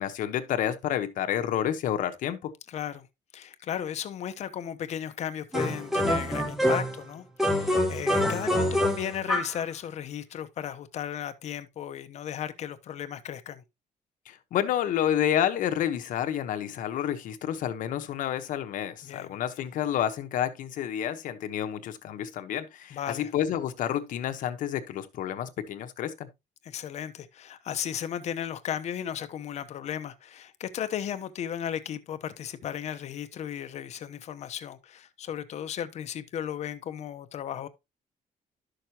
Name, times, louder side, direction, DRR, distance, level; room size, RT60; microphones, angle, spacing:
voice 1, 0.0-2.5 14.3-26.3, left 10 dB, 70° left, 1.1 m, -29 dB
voice 2, 2.7-3.1 3.3-13.6 19.0-19.4 22.9-23.3 26.6-37.7, left 9 dB, 55° left, 0.9 m, -35 dB
sound 1, 5.5-7.0 7.4-9.6, left 1 dB, ahead, 1.3 m, -26 dB
11.5 x 6.5 x 2.9 m
cardioid pair, 170°, 14 cm